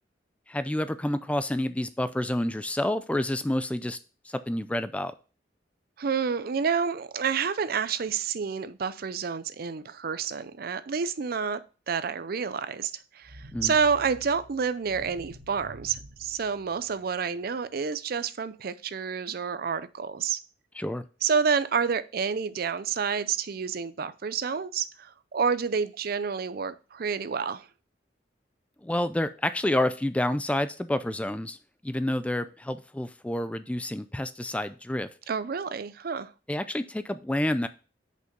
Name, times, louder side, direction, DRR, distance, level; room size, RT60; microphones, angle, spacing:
voice 1, 0.5-4.0 4.3-5.1 13.5-13.7 20.7-21.0 28.8-31.6 31.8-35.1 36.5-37.7, left 1 dB, 5° left, 0.3 m, -29 dB
voice 2, 6.0-11.6 11.9-20.4 21.2-27.7 35.3-36.3, right 6 dB, 55° right, 0.5 m, -29 dB
sound 1, 13.2-17.3, equal, 85° right, 1.4 m, -48 dB
6.4 x 5.4 x 5.2 m
head